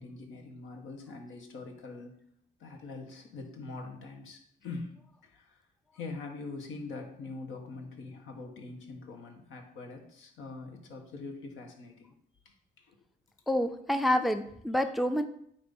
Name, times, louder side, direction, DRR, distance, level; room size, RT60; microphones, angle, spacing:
voice 1, 0.0-2.1 2.6-5.6 5.9-12.1 12.8-13.0, left 3 dB, 80° left, 3 dB, 1.4 m, -43 dB
voice 2, 13.5-15.2, left 1 dB, ahead, 9 dB, 0.4 m, -28 dB
8.7 x 2.9 x 5.4 m, 0.68 s
cardioid pair, 90°, 20 cm